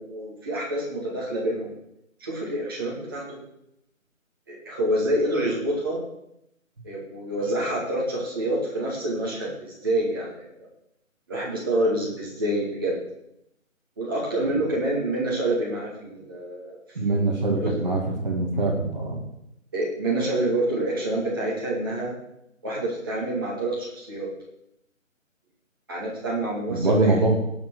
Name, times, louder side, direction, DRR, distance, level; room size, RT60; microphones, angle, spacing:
voice 1, 0.0-1.7 2.2-3.4 4.5-6.0 6.8-10.5 11.3-13.0 14.0-16.8 17.1-17.3 17.6-17.8 19.7-22.1 22.6-24.3 25.9-27.4, right 1 dB, 15° right, -6 dB, 2.3 m, -27 dB
voice 2, 16.9-19.2 26.7-27.3, right 2 dB, 35° right, -1 dB, 2.3 m, -23 dB
18.5 x 6.6 x 4.8 m, 0.81 s
figure-of-eight pair, 175°, 40 cm